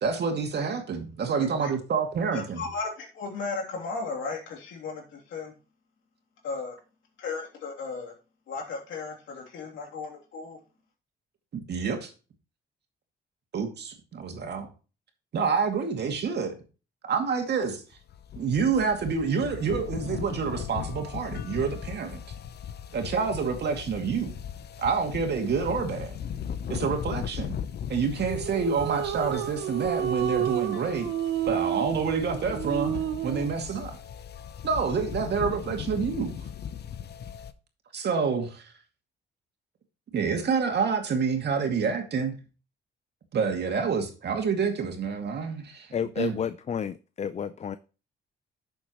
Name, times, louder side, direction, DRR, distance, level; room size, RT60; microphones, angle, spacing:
voice 1, 0.0-2.6 11.5-12.1 13.5-14.7 15.3-16.6 17.1-17.8 18.4-22.2 22.9-24.4 24.8-26.1 26.7-27.5 27.9-31.1 31.5-34.0 34.6-36.4 37.9-38.7 40.1-42.4 43.3-46.4, right 5 dB, 55° right, 2.3 m, -28 dB
voice 2, 1.4-1.7 2.3-5.5 6.4-6.8 7.2-8.1 8.5-10.6, left 4 dB, 80° left, 3.0 m, -35 dB
sound 1, 17.9-37.5, left 8 dB, 55° left, 0.8 m, -38 dB
sound 2, 28.3-33.6, right 11 dB, 90° right, 0.8 m, -30 dB
voice 3, 45.9-47.8, left 7 dB, 35° left, 0.4 m, -31 dB
11.5 x 7.0 x 3.1 m
cardioid pair, 90°, 20 cm